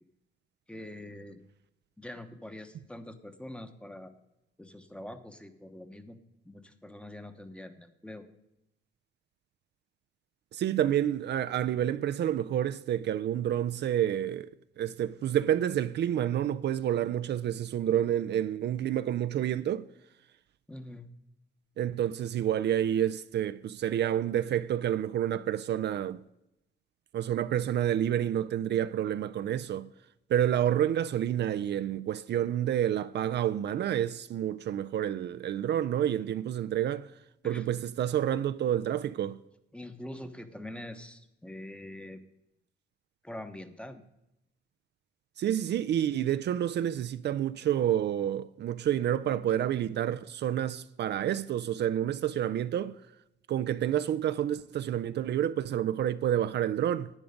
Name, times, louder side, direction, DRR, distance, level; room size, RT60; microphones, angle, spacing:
voice 1, 0.7-1.4 2.0-4.1 4.6-6.2 6.4-8.3 20.7-21.1 37.4-37.7 39.7-42.2 43.2-44.0, left 1 dB, 5° left, 0.9 m, -44 dB
voice 2, 10.5-14.5 14.8-19.9 21.8-26.2 27.1-29.9 30.3-37.1 37.4-39.4 45.4-52.9 53.5-57.1, right 10 dB, 60° right, 0.4 m, -29 dB
11.0 x 9.1 x 5.1 m
cardioid pair, 115°, 19 cm